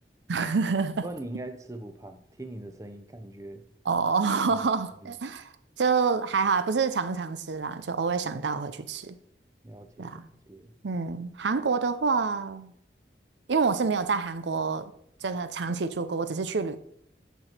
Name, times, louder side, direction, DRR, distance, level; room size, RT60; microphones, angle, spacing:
voice 1, 0.3-1.1 3.9-5.5 5.8-9.2 10.0-10.3 10.8-12.7 13.5-14.9 15.2-16.8, right 5 dB, 90° right, 0.6 m, -27 dB
voice 2, 1.0-3.6 4.5-4.7 5.0-5.1 9.6-10.2 10.5-10.7, right 1 dB, 20° right, 0.6 m, -41 dB
9.3 x 6.0 x 4.4 m
head